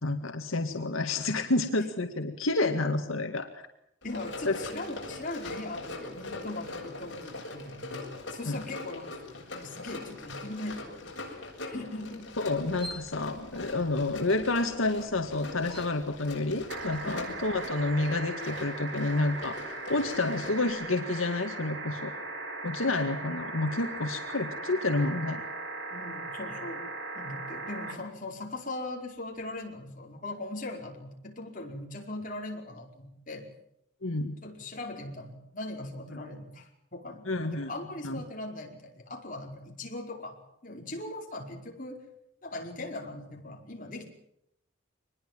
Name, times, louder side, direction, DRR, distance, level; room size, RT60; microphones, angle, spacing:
voice 1, 0.0-3.6 4.4-4.6 8.5-8.6 12.4-22.1 22.6-25.4 34.0-34.4 36.1-36.2 37.3-37.7 38.0-38.2, left 2 dB, 85° left, 5 dB, 2.0 m, -29 dB
Run, 4.0-20.7, left 2 dB, 60° left, 7.3 m, -42 dB
voice 2, 4.0-12.3 17.0-17.4 25.9-33.5 34.4-40.4 40.6-42.0 42.4-44.1, left 2 dB, 40° left, 1 dB, 5.0 m, -40 dB
sound 1, 12.5-18.1, equal, 25° right, 4.1 m, -49 dB
sound 2, 16.7-27.9 29.4-29.5, right 3 dB, 60° right, 7.5 m, -38 dB
25.0 x 21.0 x 7.6 m, 0.78 s
head